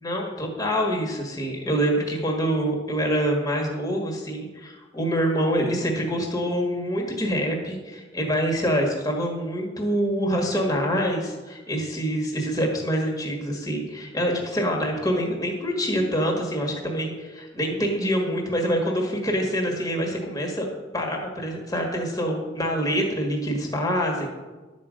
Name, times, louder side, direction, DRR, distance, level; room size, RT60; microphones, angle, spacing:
voice 1, 0.0-20.7 20.9-24.3, equal, 20° left, 0 dB, 1.5 m, -26 dB
11.5 x 5.2 x 7.4 m, 1.2 s
head